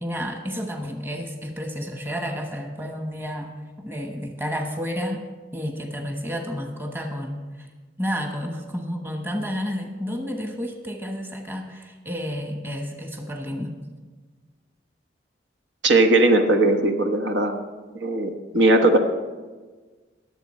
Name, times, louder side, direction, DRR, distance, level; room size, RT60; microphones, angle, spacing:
voice 1, 0.0-3.5 3.8-5.2 5.5-7.7 8.0-13.7, equal, 10° right, 3 dB, 1.2 m, -31 dB
voice 2, 15.8-17.5 17.9-19.0, right 2 dB, 85° right, 5 dB, 1.3 m, -18 dB
20.5 x 7.8 x 4.3 m, 1.3 s
head